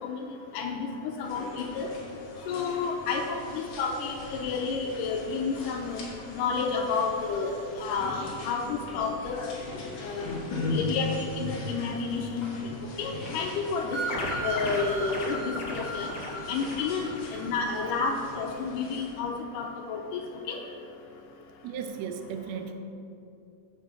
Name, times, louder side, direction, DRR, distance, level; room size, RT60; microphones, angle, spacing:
voice 1, 0.0-0.9 1.2-1.9 2.5-6.0 6.3-9.6 10.0-10.4 10.6-12.7 13.0-16.1 16.5-20.2 20.5-20.6, left 4 dB, 85° left, 2 dB, 2.3 m, -31 dB
sound 1, 1.2-19.1, left 2 dB, 45° left, 1.9 m, -39 dB
sound 2, 13.9-18.3, equal, 65° left, 0.9 m, -35 dB
voice 2, 21.6-22.7, right 7 dB, 75° right, 7 dB, 1.6 m, -37 dB
8.7 x 7.4 x 4.8 m, 2.7 s
omnidirectional pair, 3.7 m